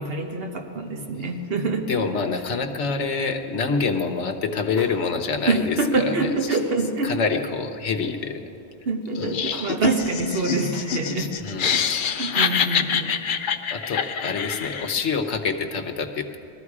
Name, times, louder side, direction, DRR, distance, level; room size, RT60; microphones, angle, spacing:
voice 1, 0.0-1.9 5.5-7.1 8.8-11.4 11.6-13.2, right 3 dB, 60° right, 4 dB, 1.4 m, -26 dB
voice 2, 1.9-6.6 7.0-8.4 9.2-9.3 11.4-11.7 13.7-16.4, left 5 dB, 85° left, 6 dB, 1.3 m, -26 dB
sound 1, 4.8-4.9 6.5-6.8 8.1-8.4 9.5-9.7 10.7-10.9, right 1 dB, 30° right, 4.1 m, -44 dB
Laughter, 9.2-15.0, left 7 dB, 55° left, 0.7 m, -26 dB
20.0 x 14.0 x 4.8 m, 2.6 s
omnidirectional pair, 1.2 m